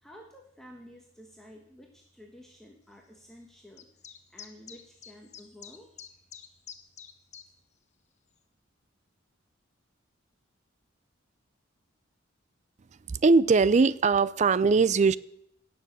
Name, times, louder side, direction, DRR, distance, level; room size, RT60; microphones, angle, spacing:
voice 1, 0.0-3.9 4.3-5.9, equal, ahead, 0 dB, 1.4 m, -51 dB
sound 1, 3.8-7.5, left 8 dB, 35° left, 1.1 m, -47 dB
voice 2, 13.1-15.2, right 4 dB, 35° right, 19 dB, 0.4 m, -21 dB
17.5 x 7.0 x 7.4 m, 0.75 s
head